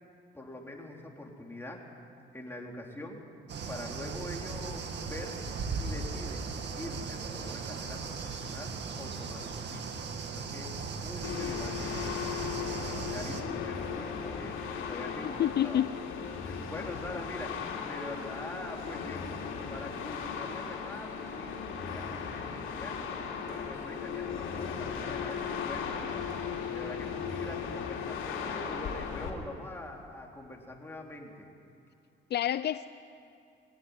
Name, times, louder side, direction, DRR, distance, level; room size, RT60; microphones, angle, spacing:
voice 1, 0.3-1.9 2.3-3.2 3.7-5.4 5.7-6.5 6.8-9.9 10.3-14.6 14.9-15.8 16.3-19.3 19.7-23.1 23.5-26.2 26.7-31.5, left 1 dB, 10° left, 0 dB, 3.6 m, -44 dB
sound 1, 3.5-13.4, right 4 dB, 60° right, 2.1 m, -37 dB
sound 2, 11.2-29.3, left 6 dB, 85° left, 3.1 m, -37 dB
voice 2, 15.4-15.9 32.3-32.9, left 11 dB, 60° left, 13 dB, 0.5 m, -28 dB
20.5 x 17.5 x 9.6 m, 2.5 s
cardioid pair, 90°, 20 cm